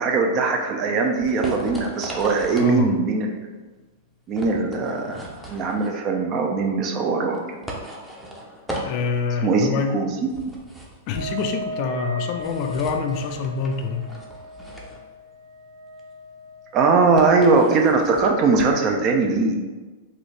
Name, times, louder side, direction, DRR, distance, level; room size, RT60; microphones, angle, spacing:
voice 1, 0.0-3.5 4.3-7.4 9.4-10.5 16.7-19.6, right 4 dB, 35° right, 3 dB, 0.6 m, -21 dB
sound 1, 0.6-18.9, equal, ahead, 0.7 m, -38 dB
voice 2, 2.5-2.9 5.1-5.2 8.9-10.1 11.1-14.0, left 5 dB, 50° left, 6 dB, 0.4 m, -26 dB
Wind instrument woodwind instrument, 11.1-16.8, equal, 85° right, 0.3 m, -36 dB
3.9 x 2.6 x 3.3 m, 1.3 s
hypercardioid pair, 120°, 0 cm